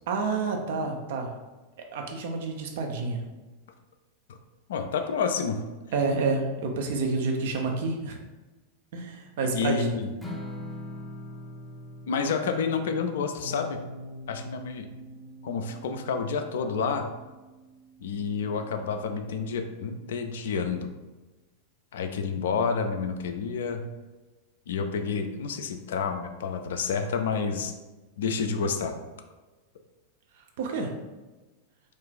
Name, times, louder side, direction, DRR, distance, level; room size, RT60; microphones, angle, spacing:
voice 1, 0.1-1.3 1.9-3.2 5.9-8.2 8.9-10.0 30.6-30.9, right 4 dB, 55° right, 3 dB, 0.5 m, -29 dB
voice 2, 4.7-5.6 9.5-10.1 12.1-13.8 14.3-14.9 15.4-17.0 18.0-20.9 21.9-23.8 24.7-27.7 28.2-28.9, left 5 dB, 60° left, 6 dB, 0.3 m, -29 dB
Strum, 10.2-16.5, left 1 dB, 5° left, 0.5 m, -43 dB
sound 1, 13.4-19.6, equal, 30° right, 1.0 m, -46 dB
2.5 x 2.3 x 3.8 m, 1.2 s
figure-of-eight pair, 90°, 0 cm